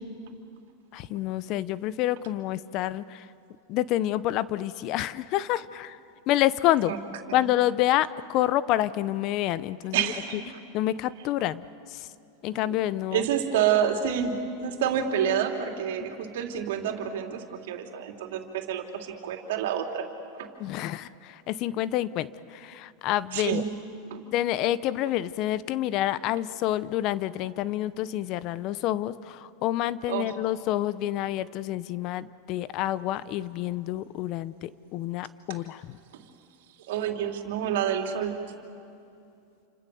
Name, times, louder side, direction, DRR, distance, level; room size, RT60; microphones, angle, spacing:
voice 1, 0.9-3.3 3.7-6.0 6.3-6.9 7.3-10.1 10.7-12.1 12.4-13.3 20.6-23.6 24.3-36.0, left 14 dB, 50° left, 17 dB, 0.8 m, -28 dB
voice 2, 9.9-10.4 13.1-20.1 20.4-20.5 23.3-23.7 24.1-24.2 30.1-30.3 36.1-36.2 36.9-38.4, right 9 dB, 75° right, 4 dB, 3.2 m, -28 dB
29.0 x 27.0 x 7.0 m, 2.6 s
hypercardioid pair, 120°, 0 cm